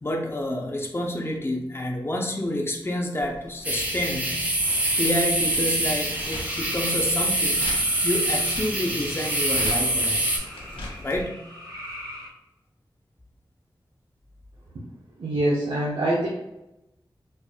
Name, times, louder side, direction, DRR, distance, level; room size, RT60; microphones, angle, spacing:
voice 1, 0.0-4.4 5.0-7.6 8.0-10.2 11.0-11.5, left 1 dB, 25° left, 0 dB, 0.6 m, -29 dB
sound 1, 3.2-11.3, left 1 dB, 85° left, 0.7 m, -41 dB
sound 2, 3.6-10.4, right 1 dB, 15° right, 0.7 m, -25 dB
sound 3, 6.4-12.3, equal, 45° right, 1.1 m, -41 dB
voice 2, 15.2-16.3, right 1 dB, 90° right, -5 dB, 0.7 m, -24 dB
4.3 x 2.5 x 2.4 m, 0.91 s
wide cardioid pair, 90°, 9 cm